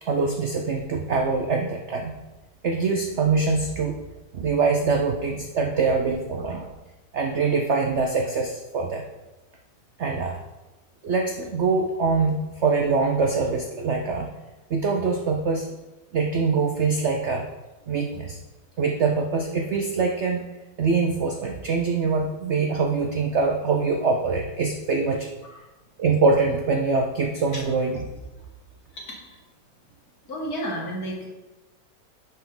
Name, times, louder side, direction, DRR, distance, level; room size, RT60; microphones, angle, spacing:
voice 1, 0.0-2.2 2.6-4.0 4.3-6.7 7.1-9.0 10.0-10.4 11.0-14.3 14.7-15.7 16.1-17.5 17.9-18.4 18.8-20.4 20.8-25.3 26.0-28.0, right 4 dB, 70° right, 3 dB, 0.6 m, -24 dB
voice 2, 30.3-31.3, equal, 55° left, -3 dB, 2.3 m, -31 dB
10.5 x 4.6 x 3.8 m, 1.1 s
omnidirectional pair, 2.0 m